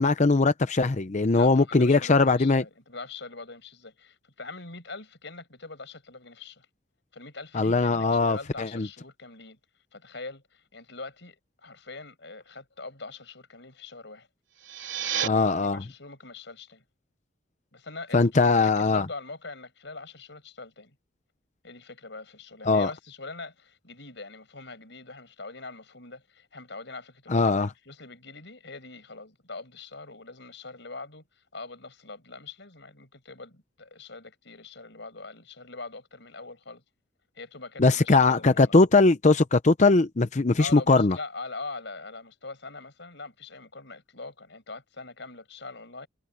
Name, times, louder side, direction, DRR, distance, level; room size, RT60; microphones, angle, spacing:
voice 1, 0.0-2.6 7.5-8.9 15.2-15.8 18.1-19.1 22.7-22.9 27.3-27.7 37.8-41.2, left 3 dB, 40° left, 0.7 m, -21 dB
voice 2, 1.3-6.7 7.1-9.6 9.9-14.3 15.1-16.8 17.7-21.0 21.6-36.8 37.4-38.8 40.6-46.1, left 3 dB, 65° left, 6.9 m, -43 dB
sound 1, 14.5-15.3, right 9 dB, 80° right, 3.3 m, -30 dB
head